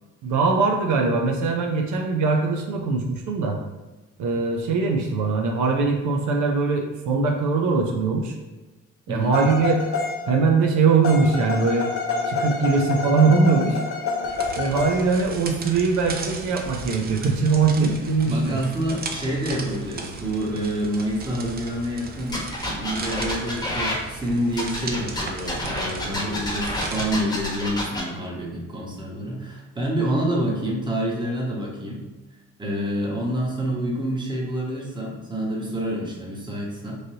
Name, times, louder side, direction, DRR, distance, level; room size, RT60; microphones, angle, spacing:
voice 1, 0.2-3.6 4.2-8.4 9.1-9.8 10.3-11.9 12.3-13.8 14.6-18.6, right 4 dB, 80° right, 2 dB, 0.5 m, -21 dB
voice 2, 9.1-9.4 18.2-32.0 32.6-37.0, right 1 dB, 15° right, -3 dB, 0.9 m, -27 dB
sound 1, 9.3-10.4 11.0-15.2, left 4 dB, 50° left, 0.5 m, -28 dB
sound 2, 14.2-27.2, right 4 dB, 30° right, 0.4 m, -37 dB
sound 3, 22.3-24.0 24.5-28.0, left 1 dB, 15° left, 1.0 m, -29 dB
3.2 x 2.6 x 2.7 m, 1.2 s
cardioid pair, 90°, 30 cm